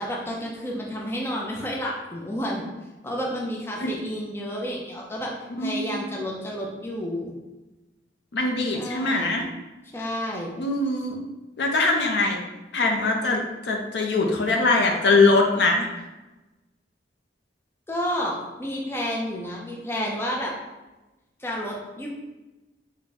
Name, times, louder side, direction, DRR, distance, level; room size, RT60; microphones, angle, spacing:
voice 1, 0.0-2.6 3.0-5.3 5.6-7.3 8.7-9.3 9.9-10.5 17.9-20.5 21.4-22.1, equal, 15° left, -2 dB, 0.4 m, -30 dB
voice 2, 5.6-6.1 8.3-9.4 10.6-11.2 11.6-12.4 12.7-15.9, left 3 dB, 75° left, 2 dB, 0.5 m, -22 dB
3.5 x 2.1 x 4.0 m, 1.1 s
head